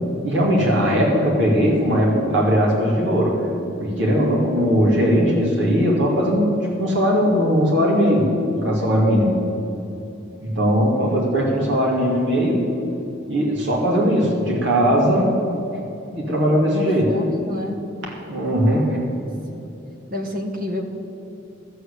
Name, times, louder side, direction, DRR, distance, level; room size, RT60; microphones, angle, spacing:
voice 1, 0.2-3.4 3.8-9.4 10.4-12.6 13.3-15.4 16.1-17.1 18.3-19.0, equal, 60° right, -3 dB, 2.7 m, -19 dB
voice 2, 16.7-17.8 19.5-19.6 20.1-20.8, left 1 dB, 45° right, 3 dB, 1.5 m, -29 dB
13.0 x 7.9 x 8.5 m, 2.9 s
head